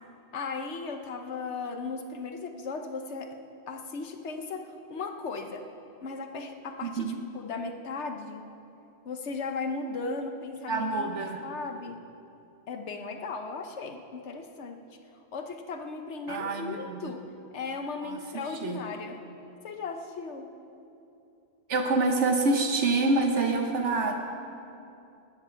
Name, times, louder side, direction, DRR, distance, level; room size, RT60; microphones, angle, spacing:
voice 1, 0.3-3.3 3.7-5.6 6.0-8.5 9.0-11.2 11.4-12.0 12.7-14.8 15.3-17.2 17.5-19.2 19.6-20.5, left 4 dB, 75° left, 5 dB, 1.2 m, -36 dB
voice 2, 6.8-7.2 10.7-11.4 16.3-17.1 18.0-18.8 21.7-24.1, right 3 dB, 80° right, 3 dB, 1.4 m, -27 dB
19.5 x 7.3 x 6.9 m, 2.7 s
omnidirectional pair, 1.2 m